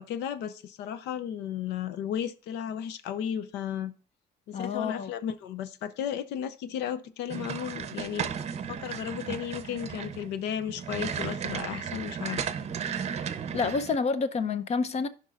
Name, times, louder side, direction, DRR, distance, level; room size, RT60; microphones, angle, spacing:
voice 1, 0.0-3.9 4.5-8.3 8.7-12.4, left 9 dB, 85° left, 0.6 m, -34 dB
voice 2, 4.5-5.1 13.5-15.1, left 5 dB, 40° left, 0.6 m, -28 dB
sound 1, 7.3-14.0, right 7 dB, 40° right, 0.7 m, -35 dB
14.0 x 5.3 x 2.4 m
cardioid pair, 110°, 17 cm